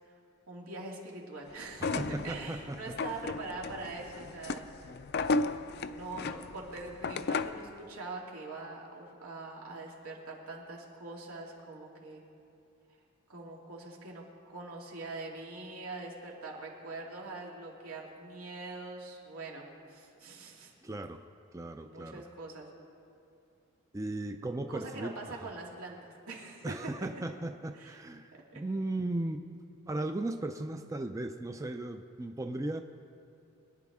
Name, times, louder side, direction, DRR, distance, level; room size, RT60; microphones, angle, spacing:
voice 1, 0.5-4.8 5.4-12.2 13.3-20.7 21.8-22.7 24.7-26.7 27.7-28.0 28.5-28.6, right 3 dB, 90° right, -2 dB, 2.5 m, -43 dB
sound 1, 1.7-7.7, left 3 dB, 50° left, 0.4 m, -35 dB
voice 2, 1.8-3.2 20.8-21.3 21.5-22.2 23.9-25.5 26.6-29.4 29.9-32.8, right 2 dB, 15° right, 6 dB, 0.4 m, -37 dB
23.0 x 10.5 x 3.6 m, 2.8 s
head